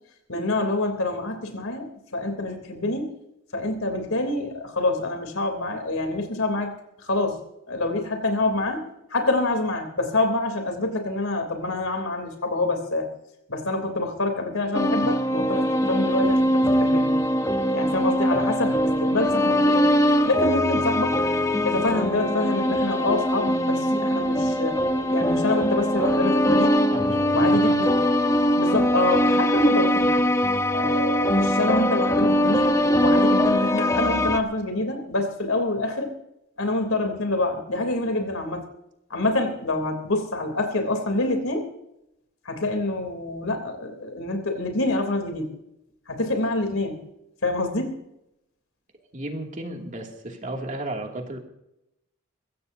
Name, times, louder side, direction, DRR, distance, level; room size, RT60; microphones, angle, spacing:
voice 1, 0.3-1.9 2.1-3.2 3.5-6.7 7.0-7.4 7.7-13.1 13.5-17.1 17.7-19.8 20.2-21.2 21.6-26.8 27.3-28.0 28.5-30.3 30.7-36.1 36.6-38.6 39.1-41.7 42.4-45.6 46.1-47.0 47.4-47.9, left 2 dB, 80° left, 5 dB, 3.3 m, -26 dB
sound 1, 14.7-34.4, equal, 15° left, 0.8 m, -22 dB
voice 2, 26.9-27.9 49.1-51.4, right 1 dB, 35° right, 2 dB, 2.5 m, -34 dB
22.5 x 16.0 x 2.8 m, 0.83 s
head